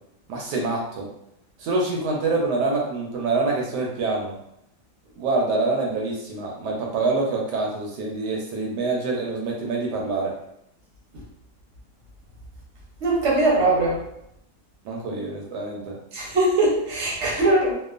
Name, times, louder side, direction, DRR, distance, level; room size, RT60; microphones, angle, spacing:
voice 1, 0.3-1.1 1.6-4.3 5.2-10.3 14.8-16.0, right 3 dB, 75° right, -1 dB, 1.1 m, -26 dB
voice 2, 13.0-14.0 16.1-17.7, right 2 dB, 55° right, -3 dB, 0.8 m, -21 dB
2.9 x 2.2 x 2.4 m, 0.78 s
omnidirectional pair, 1.9 m